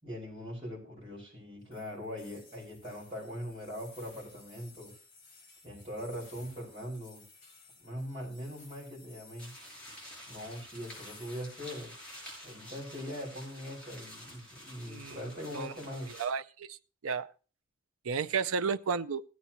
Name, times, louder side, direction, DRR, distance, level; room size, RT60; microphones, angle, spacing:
voice 1, 0.0-4.9 5.6-7.2 7.8-9.5 10.3-11.9 12.4-16.1, equal, 30° right, -4 dB, 5.2 m, -41 dB
sound 1, 1.7-11.5, left 4 dB, 40° left, 5.4 m, -57 dB
sound 2, 9.4-16.3, equal, 5° left, 7.4 m, -49 dB
voice 2, 16.2-16.8 17.0-17.3 18.0-19.2, right 5 dB, 85° right, 12 dB, 0.5 m, -32 dB
17.0 x 9.6 x 3.0 m, 0.37 s
head